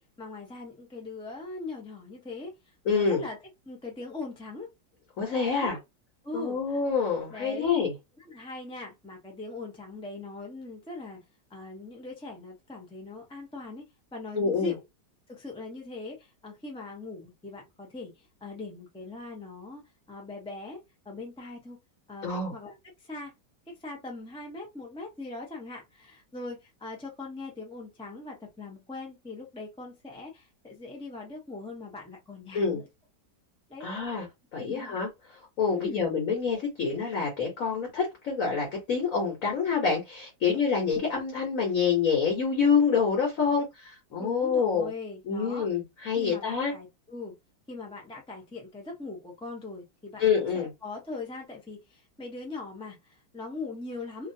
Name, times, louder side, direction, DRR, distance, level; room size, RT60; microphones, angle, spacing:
voice 1, 0.0-3.4 3.7-4.7 5.4-5.8 6.2-6.8 7.3-7.7 8.2-11.2 11.5-13.8 14.1-14.8 15.3-19.8 20.1-21.8 22.1-23.3 23.8-32.9 33.7-33.9 34.6-35.0 35.7-36.1 44.2-45.7 46.2-47.4 47.7-50.2 50.5-54.3, left 3 dB, 10° left, 0.3 m, -41 dB
voice 2, 2.9-3.2 5.2-5.8 6.3-7.9 14.3-14.7 22.2-22.5 32.5-32.8 33.8-34.3 34.5-35.1 35.6-44.9 45.3-46.7 50.2-50.7, left 5 dB, 55° left, 1.4 m, -27 dB
2.8 x 2.7 x 2.6 m
omnidirectional pair, 1.8 m